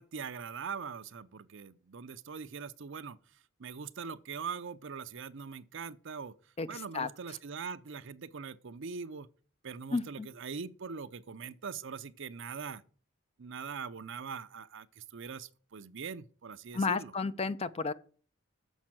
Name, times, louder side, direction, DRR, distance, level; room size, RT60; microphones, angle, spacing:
voice 1, 0.0-3.2 3.6-6.3 6.7-9.3 9.6-12.8 13.4-17.1, right 6 dB, 65° right, 0.6 m, -42 dB
voice 2, 6.6-7.1 9.9-10.3 16.7-17.9, left 4 dB, 30° left, 0.5 m, -32 dB
7.3 x 5.4 x 7.5 m
head